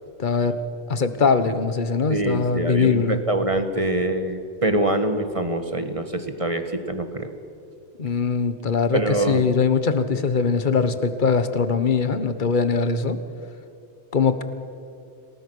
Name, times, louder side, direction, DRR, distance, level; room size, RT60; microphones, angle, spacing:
voice 1, 0.2-0.6 0.9-3.2 8.0-13.2 14.1-14.4, left 5 dB, 45° left, 11 dB, 1.3 m, -21 dB
voice 2, 2.1-7.3 8.9-9.5, right 1 dB, 30° right, 7 dB, 1.5 m, -24 dB
28.0 x 18.5 x 6.3 m, 2.6 s
omnidirectional pair, 1.2 m